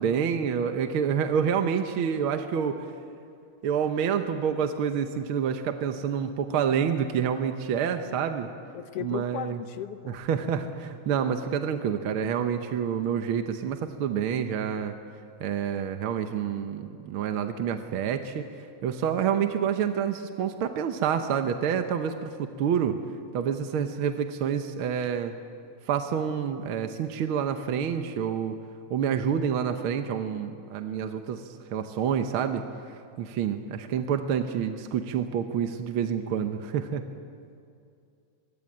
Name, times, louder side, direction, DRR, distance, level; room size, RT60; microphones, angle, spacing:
voice 1, 0.0-2.8 3.6-8.5 9.0-9.6 10.1-14.9 15.4-18.5 18.8-23.0 23.3-25.3 25.9-28.6 28.9-32.6 32.9-37.0, right 8 dB, 65° right, 7 dB, 1.5 m, -28 dB
voice 2, 8.7-10.2, left 10 dB, 70° left, 11 dB, 1.5 m, -36 dB
23.5 x 23.5 x 8.7 m, 2.5 s
omnidirectional pair, 3.4 m